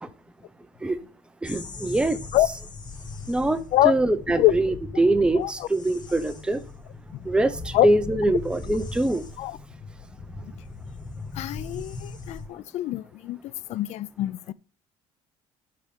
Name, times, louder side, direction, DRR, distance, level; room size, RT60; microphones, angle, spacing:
sound 1, 1.4-12.5, left 3 dB, 35° left, 1.9 m, -39 dB
voice 1, 1.4-2.2 3.3-3.6 3.8-6.6 7.3-9.2, right 2 dB, 10° right, 0.7 m, -23 dB
voice 2, 5.3-5.7 7.1-7.3 7.7-7.9 9.4-9.6 10.4-10.5 11.3-14.5, left 15 dB, 65° left, 0.5 m, -25 dB
12.5 x 4.2 x 5.1 m
cardioid pair, 120°, 12 cm